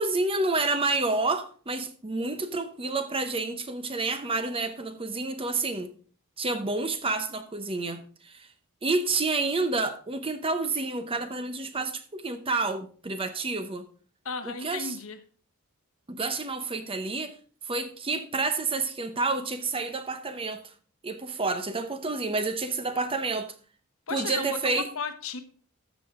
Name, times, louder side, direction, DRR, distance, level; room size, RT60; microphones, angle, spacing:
voice 1, 0.0-5.9 6.4-8.5 8.8-13.9 14.4-15.0 16.1-17.4 17.7-20.7 21.0-23.5 24.1-24.9, right 3 dB, 25° right, 0.8 m, -29 dB
voice 2, 14.2-15.2 24.1-25.4, left 5 dB, 65° left, 1.1 m, -34 dB
13.5 x 6.1 x 3.7 m
head